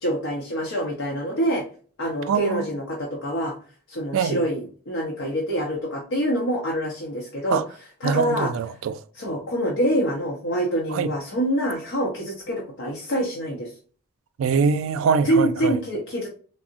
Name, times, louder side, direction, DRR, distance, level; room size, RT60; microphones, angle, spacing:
voice 1, 0.0-1.6 2.0-3.5 3.9-7.6 8.0-8.5 9.2-13.7 15.2-16.3, equal, 60° left, 0.6 m, -25 dB
voice 2, 2.3-2.6 4.1-4.4 7.5-7.6 8.0-9.0 10.9-11.1 14.4-15.8, right 5 dB, 65° right, 0.3 m, -23 dB
3.5 x 2.0 x 2.4 m
head